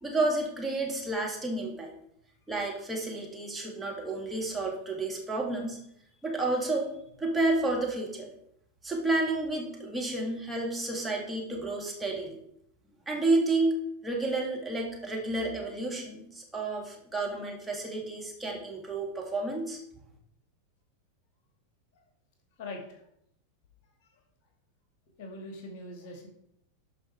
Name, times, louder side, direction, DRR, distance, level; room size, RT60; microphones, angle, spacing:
voice 1, 0.0-1.9 2.5-5.8 6.2-6.9 7.2-8.3 8.8-12.4 13.1-19.8, right 2 dB, 10° right, -2 dB, 2.7 m, -30 dB
voice 2, 22.6-23.0 25.2-26.3, left 2 dB, 50° left, 3 dB, 2.4 m, -42 dB
12.5 x 5.3 x 4.8 m, 0.74 s
figure-of-eight pair, 90°, 0 cm